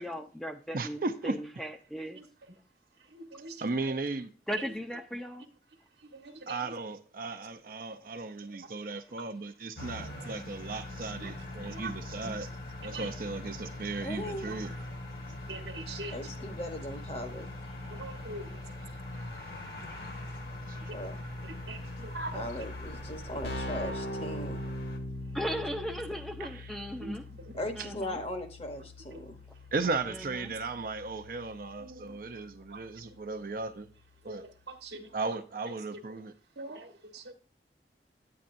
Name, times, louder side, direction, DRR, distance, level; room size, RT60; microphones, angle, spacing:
voice 1, 0.0-2.2 4.5-5.5 25.3-27.2 27.7-28.2 30.1-30.5, equal, ahead, 0.5 m, -37 dB
voice 2, 0.7-1.4 3.6-4.3 6.5-12.5 12.8-14.7 20.7-20.9 26.4-26.7 29.7-33.9 34.2-34.4 35.1-36.3, right 3 dB, 50° right, 0.6 m, -36 dB
voice 3, 2.1-2.6 3.1-3.9 4.6-4.7 6.0-6.7 8.6-8.7 10.2-10.3 11.2-11.3 11.7-11.9 12.2-12.3 12.8-13.1 14.5-14.6 15.5-16.2 17.9-18.5 20.7-21.1 21.4-22.5 27.0-27.6 29.1-29.2 31.8-32.2 32.7-32.9 34.2-35.4 35.7-36.2 36.6-37.3, right 2 dB, 70° right, 1.2 m, -43 dB
sound 1, 9.7-25.0, left 1 dB, 55° left, 1.5 m, -42 dB
voice 4, 14.0-14.5 16.1-18.0 20.9-21.2 22.3-24.6 27.6-29.4, left 1 dB, 35° left, 1.0 m, -39 dB
Keyboard (musical), 23.2-33.8, left 1 dB, 70° left, 1.7 m, -42 dB
9.5 x 8.7 x 2.6 m
head